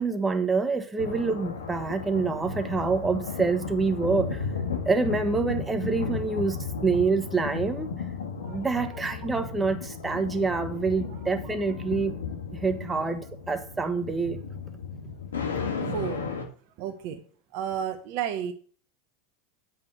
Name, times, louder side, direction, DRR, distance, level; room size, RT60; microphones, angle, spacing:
voice 1, 0.0-4.5 4.8-7.9 8.5-12.1 12.5-14.4, right 4 dB, 15° right, 1.4 m, -27 dB
sound 1, 1.0-16.4, left 5 dB, 85° left, 1.8 m, -34 dB
voice 2, 15.8-16.3 16.8-17.2 17.5-18.5, right 9 dB, 55° right, 1.0 m, -32 dB
8.7 x 5.2 x 7.1 m
hypercardioid pair, 95°, 0 cm